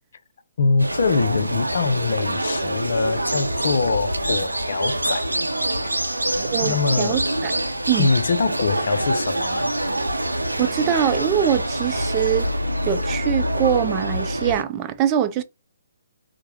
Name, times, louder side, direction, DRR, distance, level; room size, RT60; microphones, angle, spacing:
voice 1, 0.6-5.3 6.6-7.2 8.0-9.7, left 4 dB, 60° left, 0.5 m, -23 dB
sound 1, 0.8-14.6, right 1 dB, 90° right, 0.6 m, -25 dB
voice 2, 6.4-7.5 7.9-8.1 10.6-12.5 12.9-15.4, right 10 dB, 25° right, 0.4 m, -23 dB
4.6 x 2.1 x 2.9 m
figure-of-eight pair, 130°, 0 cm